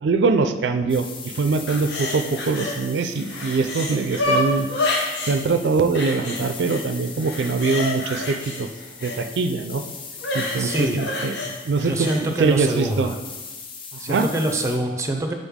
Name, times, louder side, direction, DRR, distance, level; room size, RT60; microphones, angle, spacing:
voice 1, 0.0-4.7 5.3-8.7 9.0-9.8 10.3-11.3 11.7-13.1 14.1-14.3, right 4 dB, 80° right, 8 dB, 0.4 m, -23 dB
sound 1, 0.9-14.8, left 5 dB, 30° left, 0.5 m, -40 dB
sound 2, 1.7-2.8 3.1-5.4 5.9-6.8 7.2-9.2 10.2-12.2 12.7-12.8, left 2 dB, 80° left, 0.9 m, -28 dB
voice 2, 10.6-11.0 11.8-13.2 14.0-15.3, right 1 dB, 15° right, 4 dB, 0.5 m, -25 dB
7.2 x 3.8 x 3.6 m, 1.2 s
head